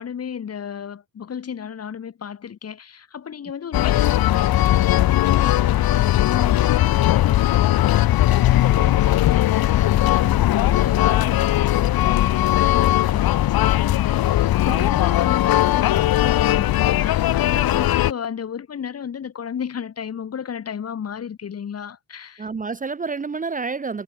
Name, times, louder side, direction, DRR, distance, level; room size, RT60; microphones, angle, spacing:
voice 1, 0.0-22.5, left 8 dB, 40° left, 4.3 m, -33 dB
sound 1, 3.7-18.1, left 14 dB, 70° left, 2.2 m, -18 dB
voice 2, 14.7-15.0 22.4-24.0, right 4 dB, 20° right, 1.3 m, -29 dB
cardioid pair, 135°, 38 cm